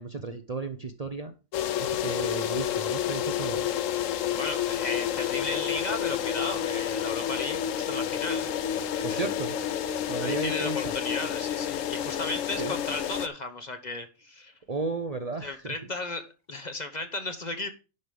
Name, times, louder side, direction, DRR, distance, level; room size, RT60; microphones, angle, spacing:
voice 1, 0.0-1.3 1.8-3.7 4.2-4.4 9.0-9.5 10.1-10.9 12.6-12.7 14.7-15.7, right 3 dB, 35° right, 0.7 m, -34 dB
sound 1, 1.5-13.3, left 10 dB, 80° left, 1.0 m, -30 dB
voice 2, 4.3-8.5 8.9-9.4 10.2-14.5 15.4-17.7, left 2 dB, 35° left, 1.1 m, -35 dB
11.0 x 5.4 x 5.1 m
omnidirectional pair, 1.3 m